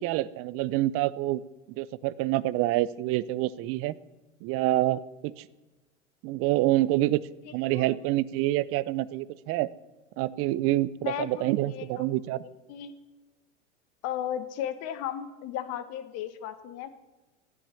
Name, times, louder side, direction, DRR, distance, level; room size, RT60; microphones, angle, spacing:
voice 1, 0.0-1.4 1.8-3.9 4.4-5.5 6.2-7.2 7.5-9.7 10.2-12.4, right 16 dB, 40° right, 19 dB, 0.6 m, -27 dB
voice 2, 11.0-12.9 14.0-16.9, left 10 dB, 45° left, 11 dB, 1.3 m, -35 dB
14.5 x 10.0 x 6.9 m, 1.1 s
hypercardioid pair, 95°, 36 cm